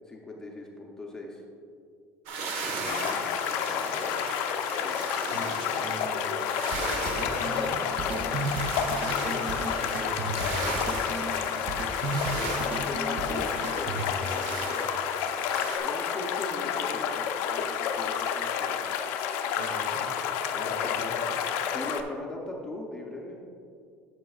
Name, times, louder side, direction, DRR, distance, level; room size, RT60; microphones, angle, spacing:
voice 1, 0.1-1.4 4.8-5.0 12.3-15.0 15.8-18.8 20.5-21.1 21.7-23.4, left 2 dB, 10° left, -1 dB, 0.6 m, -39 dB
sound 1, 2.3-15.8, right 3 dB, 80° right, 1.2 m, -37 dB
sound 2, 2.9-22.0, left 8 dB, 65° left, 0.5 m, -30 dB
voice 2, 5.8-6.5 7.1-8.7 9.2-10.4 19.5-20.0 20.4-21.3, right 1 dB, 50° right, 0 dB, 1.6 m, -41 dB
sound 3, 6.7-14.3, right 2 dB, 35° right, 0.5 m, -35 dB
12.5 x 6.0 x 2.3 m, 2.3 s
cardioid pair, 165°, 5 cm